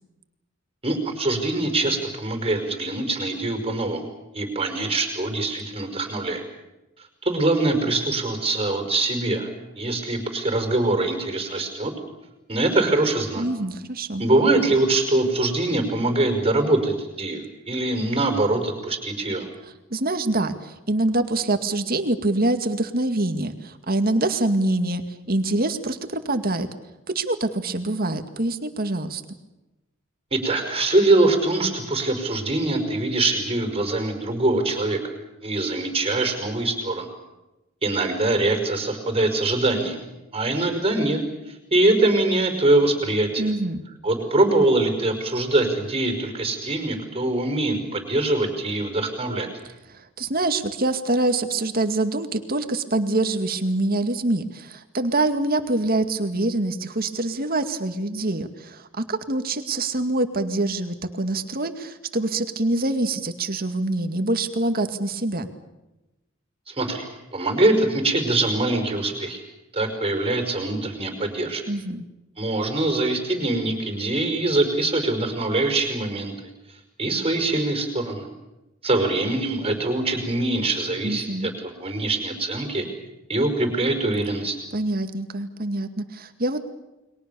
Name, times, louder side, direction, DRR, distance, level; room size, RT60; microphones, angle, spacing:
voice 1, 0.8-4.1 4.3-6.4 7.2-9.5 9.8-11.9 12.5-13.4 14.2-19.5 30.3-35.0 35.4-37.1 37.8-40.1 40.3-41.2 41.7-43.5 44.0-49.5 66.7-67.1 67.3-69.4 69.7-71.6 72.4-76.3 77.0-78.3 78.8-82.9 83.3-84.6, right 2 dB, 30° right, 6 dB, 5.3 m, -23 dB
voice 2, 13.4-14.2 19.6-26.7 27.1-29.2 43.4-43.8 49.9-65.5 71.7-72.0 81.0-81.5 84.7-86.6, right 2 dB, 50° right, 8 dB, 2.2 m, -25 dB
30.0 x 23.0 x 7.0 m, 1.0 s
head